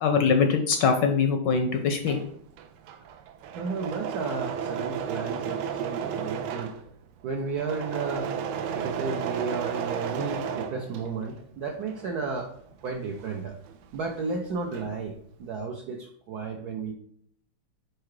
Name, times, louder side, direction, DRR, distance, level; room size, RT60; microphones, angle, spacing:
voice 1, 0.0-2.2, left 5 dB, 70° left, 6 dB, 1.1 m, -23 dB
Engine / Mechanisms, 1.8-11.4 11.8-14.1 14.4-15.1, right 7 dB, 90° right, 1.5 m, -34 dB
voice 2, 3.5-6.7 7.2-8.3 8.7-12.5 12.8-13.5 13.9-15.1 15.4-16.9, right 4 dB, 70° right, 2 dB, 0.9 m, -33 dB
4.9 x 4.5 x 4.7 m, 0.66 s
omnidirectional pair, 2.3 m